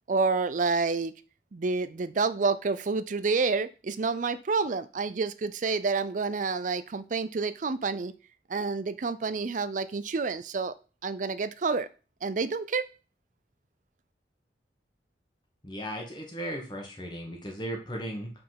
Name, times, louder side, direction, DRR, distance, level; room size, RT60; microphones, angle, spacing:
voice 1, 0.1-1.1 1.5-8.1 8.5-10.7 11.0-11.9 12.2-12.9, right 4 dB, 45° right, 14 dB, 0.5 m, -28 dB
voice 2, 15.6-18.3, equal, 25° left, 1 dB, 1.4 m, -36 dB
5.3 x 4.2 x 5.8 m, 0.35 s
head